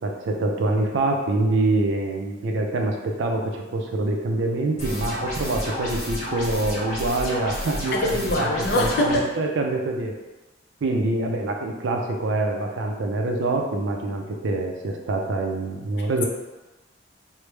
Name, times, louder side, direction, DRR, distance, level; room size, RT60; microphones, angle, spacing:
voice 1, 0.0-10.1 10.8-16.3, right 2 dB, 65° right, 2 dB, 0.4 m, -25 dB
sound 1, 4.8-9.2, left 1 dB, 35° left, 0.8 m, -31 dB
voice 2, 7.9-9.3 16.0-16.3, left 1 dB, 55° left, 1 dB, 0.4 m, -24 dB
3.1 x 2.0 x 3.2 m, 1.1 s
head